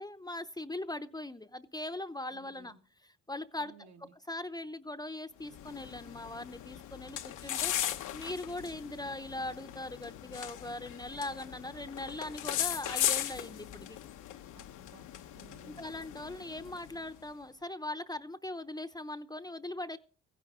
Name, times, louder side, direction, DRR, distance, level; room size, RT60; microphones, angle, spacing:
voice 1, 0.0-2.7 3.0-3.7 4.3-7.7 8.1-14.0 15.6-20.0, left 1 dB, 15° left, 0.8 m, -40 dB
voice 2, 2.3-2.8 3.6-4.1 14.5-15.9, right 5 dB, 65° right, 1.9 m, -58 dB
sound 1, 5.4-17.2, left 12 dB, 90° left, 1.0 m, -38 dB
15.5 x 10.0 x 5.0 m
cardioid pair, 90°, 30 cm